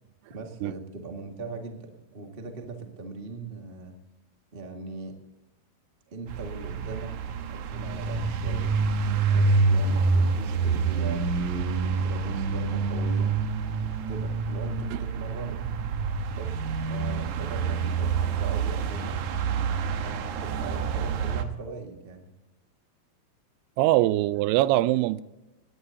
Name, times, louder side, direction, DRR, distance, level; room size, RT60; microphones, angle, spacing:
voice 1, 0.3-3.9 4.5-5.1 6.1-8.7 9.3-13.3 14.1-15.6 16.2-19.2 20.0-22.3, right 3 dB, 45° right, 2 dB, 0.7 m, -40 dB
sound 1, 6.3-21.4, right 4 dB, 65° right, 2.1 m, -27 dB
voice 2, 23.8-25.2, right 16 dB, 85° right, 16 dB, 2.6 m, -22 dB
19.0 x 17.5 x 2.8 m, 1.0 s
omnidirectional pair, 4.6 m